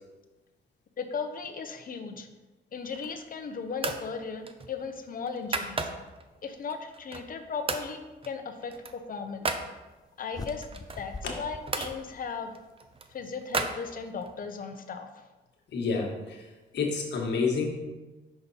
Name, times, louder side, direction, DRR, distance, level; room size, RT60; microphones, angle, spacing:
voice 1, 1.0-2.3 2.7-5.9 6.4-9.6 10.2-12.5 13.1-15.1, left 5 dB, 45° left, 7 dB, 0.8 m, -37 dB
sound 1, 2.8-3.3 3.8-4.1 4.5-6.2 6.7-7.4 7.7-7.9 8.2-9.7 10.5-11.9 12.5-14.4, right 4 dB, 30° right, 0.7 m, -35 dB
sound 2, 10.3-12.7, left 2 dB, 20° left, 0.4 m, -43 dB
voice 2, 15.7-16.4 16.7-17.7, left 4 dB, 60° left, 0 dB, 1.5 m, -29 dB
5.9 x 5.1 x 4.2 m, 1.2 s
cardioid pair, 90°, 20 cm